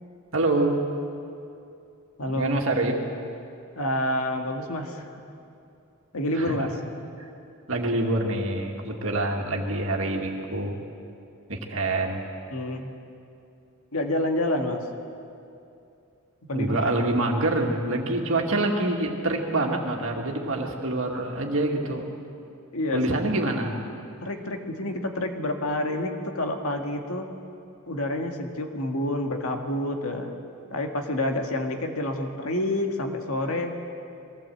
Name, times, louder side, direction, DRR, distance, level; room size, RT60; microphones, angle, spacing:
voice 1, 0.3-0.8 2.3-2.9 6.4-6.7 7.7-10.8 11.5-12.2 16.5-22.1 22.9-23.7, right 2 dB, 65° right, 1 dB, 2.2 m, -26 dB
voice 2, 2.2-2.6 3.8-5.1 6.1-6.7 12.5-12.9 13.9-14.9 16.5-17.1 22.7-23.0 24.2-27.3 27.9-30.3 30.7-33.7, left 1 dB, 70° left, 3 dB, 1.9 m, -28 dB
22.0 x 15.5 x 7.8 m, 2.6 s
head